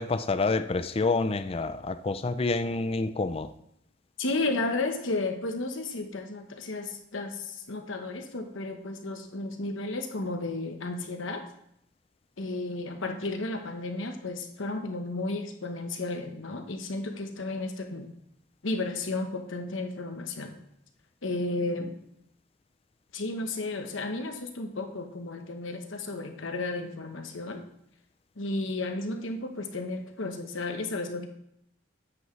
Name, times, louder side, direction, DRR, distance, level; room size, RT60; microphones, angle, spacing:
voice 1, 0.0-3.5, left 3 dB, 30° left, 0.4 m, -28 dB
voice 2, 4.2-11.4 12.4-18.1 18.6-20.5 21.2-21.9 23.1-27.6 28.4-31.3, left 2 dB, 85° left, 1.1 m, -33 dB
9.5 x 8.0 x 3.2 m
head